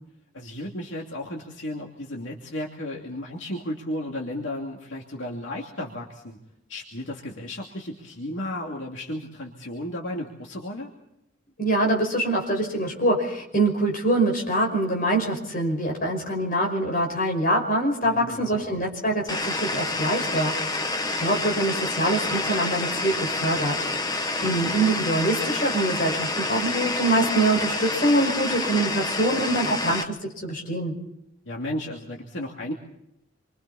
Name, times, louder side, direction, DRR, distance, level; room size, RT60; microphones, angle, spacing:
voice 1, 0.3-6.4 6.7-10.9 18.0-18.7 31.5-32.7, left 1 dB, 65° left, -1 dB, 2.8 m, -34 dB
voice 2, 11.6-20.5 21.2-23.8 24.4-31.0, right 1 dB, 45° left, 1 dB, 5.5 m, -24 dB
sound 1, 19.3-30.0, left 2 dB, 20° left, 1.2 m, -28 dB
28.5 x 25.0 x 4.3 m, 0.82 s
head